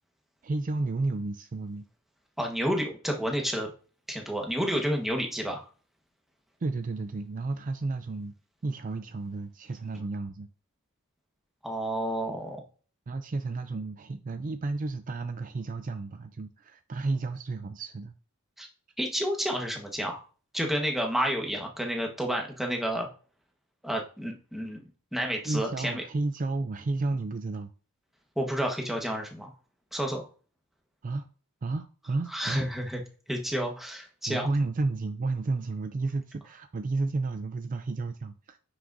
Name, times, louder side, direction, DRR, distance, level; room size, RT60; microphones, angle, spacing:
voice 1, 0.4-1.9 6.6-8.3 8.6-10.5 13.1-18.1 25.4-27.7 31.0-31.3 31.6-32.6 34.3-38.6, right 3 dB, 35° right, 0.4 m, -32 dB
voice 2, 2.4-3.7 4.1-5.7 11.6-12.6 18.6-18.7 19.0-20.2 20.5-23.1 23.8-24.8 25.1-26.0 28.4-29.5 29.9-30.3 32.3-33.0 33.3-34.5, equal, ahead, 1.3 m, -30 dB
9.5 x 6.1 x 2.6 m
head